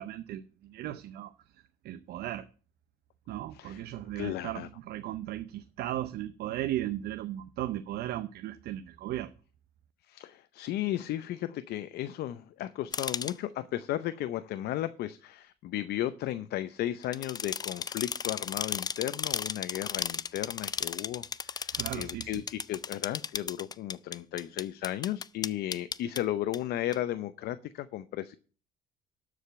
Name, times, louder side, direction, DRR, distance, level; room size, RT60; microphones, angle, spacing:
voice 1, 0.0-1.3 1.8-2.5 3.3-9.3 21.7-22.4, right 13 dB, 70° right, 0.6 m, -36 dB
voice 2, 4.2-4.7 10.1-28.4, left 13 dB, 70° left, 0.6 m, -35 dB
sound 1, 12.9-13.3 17.0-26.2 26.5-26.6 26.9-27.0, left 6 dB, 25° left, 0.4 m, -34 dB
12.5 x 4.9 x 6.8 m
cardioid pair, 110°, 17 cm